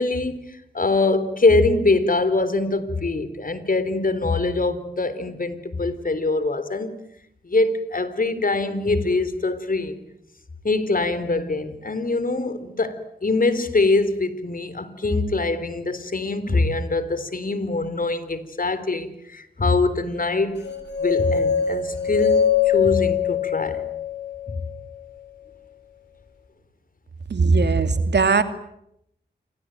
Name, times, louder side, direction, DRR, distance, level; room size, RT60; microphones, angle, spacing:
voice 1, 0.0-6.9 7.4-10.0 10.6-20.6 21.0-23.8 24.5-24.6, left 3 dB, 50° left, 3.9 m, -23 dB
sound 1, 20.6-24.7, left 8 dB, 70° left, 6.1 m, -22 dB
voice 2, 27.3-28.4, right 4 dB, 65° right, 2.7 m, -19 dB
27.5 x 22.0 x 9.2 m
cardioid pair, 40°, 19 cm